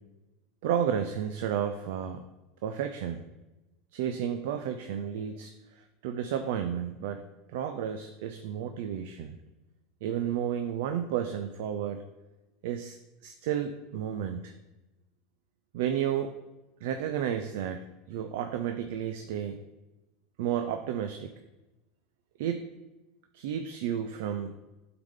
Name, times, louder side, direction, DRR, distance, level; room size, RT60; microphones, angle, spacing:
voice 1, 0.6-2.2 2.6-3.2 3.9-7.2 7.5-9.4 10.0-12.0 12.6-13.0 13.2-14.5 15.7-16.3 16.8-19.6 20.4-21.3 22.4-22.7 23.3-24.5, right 9 dB, 75° right, 7 dB, 0.4 m, -32 dB
8.6 x 3.9 x 3.6 m, 1.0 s
supercardioid pair, 110°, 0 cm